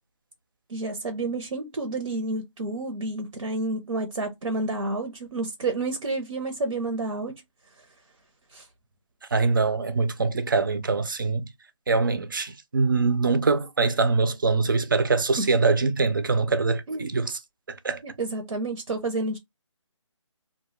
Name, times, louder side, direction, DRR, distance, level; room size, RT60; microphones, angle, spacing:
voice 1, 0.7-7.4 8.5-8.7 15.4-15.5 16.9-17.1 18.0-19.4, right 2 dB, 80° right, 0.7 m, -30 dB
voice 2, 9.3-11.4 11.9-17.4 17.7-18.0, right 4 dB, 40° right, 0.4 m, -23 dB
2.2 x 2.0 x 3.0 m
figure-of-eight pair, 170°, 16 cm